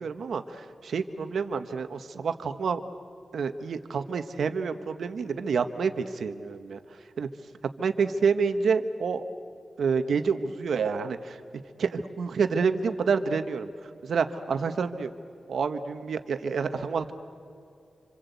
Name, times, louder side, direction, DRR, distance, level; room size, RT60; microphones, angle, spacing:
voice 1, 0.0-2.8 3.3-6.8 7.2-7.3 7.8-9.2 9.8-11.4 11.8-13.7 14.0-15.1 15.5-17.1, right 5 dB, 85° right, 9 dB, 1.3 m, -28 dB
27.0 x 26.0 x 8.3 m, 2.5 s
cardioid pair, 60°, 0 cm